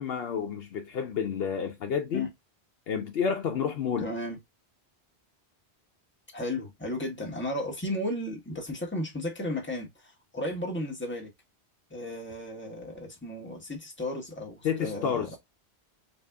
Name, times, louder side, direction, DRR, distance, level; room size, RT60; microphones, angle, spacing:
voice 1, 0.0-2.3 2.9-4.1 14.6-15.3, left 7 dB, 65° left, 0.8 m, -30 dB
voice 2, 4.0-4.4 6.3-11.3 11.9-15.4, left 1 dB, 10° left, 1.2 m, -34 dB
4.1 x 2.5 x 3.4 m
omnidirectional pair, 1.1 m